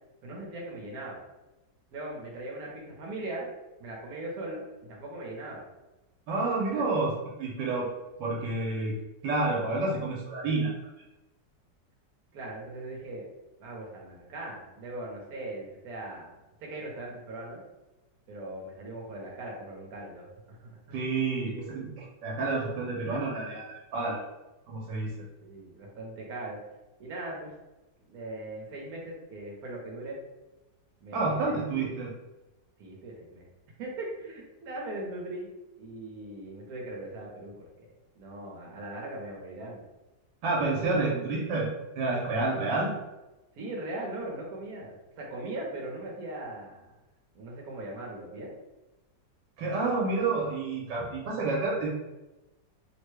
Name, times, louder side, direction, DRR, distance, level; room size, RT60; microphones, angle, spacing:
voice 1, 0.2-1.2 1.9-3.5 3.8-4.6 4.9-5.6 6.7-6.8 12.3-13.2 13.6-17.6 18.3-20.8 25.4-26.6 27.0-27.5 28.1-30.2 31.0-31.5 31.8-32.0 32.8-33.4 33.8-35.5 35.8-37.9 38.1-39.8 43.6-46.9 47.3-48.5, right 2 dB, 60° right, -2 dB, 1.2 m, -39 dB
voice 2, 6.3-7.9 8.2-9.0 9.2-10.7 20.9-24.2 24.7-25.1 31.1-32.1 40.4-41.7 42.0-42.9 49.6-51.9, right 3 dB, 90° right, -2 dB, 1.3 m, -29 dB
3.4 x 2.1 x 3.1 m, 1.0 s
omnidirectional pair, 1.9 m